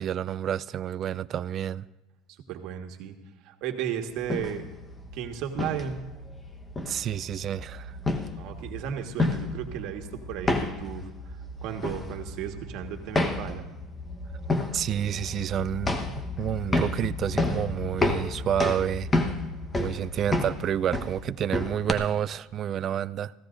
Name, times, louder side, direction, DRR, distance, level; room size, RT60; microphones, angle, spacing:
voice 1, 0.0-1.9 6.9-8.0 14.7-19.1 19.8-23.3, right 10 dB, 40° right, 0.4 m, -29 dB
voice 2, 2.5-3.1 3.4-4.6 5.1-6.0 8.4-13.6, right 9 dB, 65° right, 1.6 m, -34 dB
sound 1, 4.2-21.9, left 2 dB, 20° left, 1.1 m, -31 dB
24.5 x 15.5 x 2.6 m
cardioid pair, 125°, 0 cm